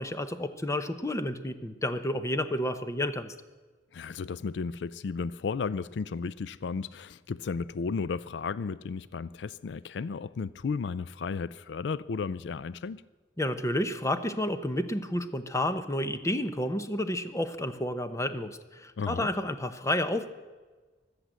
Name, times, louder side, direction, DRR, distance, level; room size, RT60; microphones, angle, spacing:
voice 1, 0.0-3.3 13.4-20.3, left 1 dB, 15° left, 10 dB, 0.9 m, -30 dB
voice 2, 3.9-13.0 19.0-19.3, left 5 dB, 75° left, 18 dB, 0.4 m, -34 dB
16.0 x 12.0 x 7.6 m, 1.3 s
head